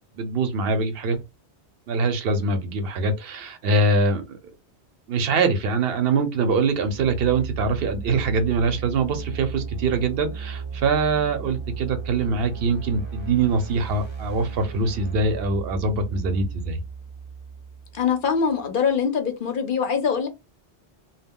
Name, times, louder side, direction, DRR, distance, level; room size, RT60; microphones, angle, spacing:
voice 1, 0.2-1.2 1.9-4.4 5.1-16.8, right 3 dB, 65° right, 0.8 m, -23 dB
sound 1, 6.7-18.5, right 6 dB, 30° right, 0.7 m, -35 dB
voice 2, 17.9-20.3, left 6 dB, 55° left, 0.7 m, -23 dB
2.2 x 2.2 x 3.5 m
omnidirectional pair, 1.1 m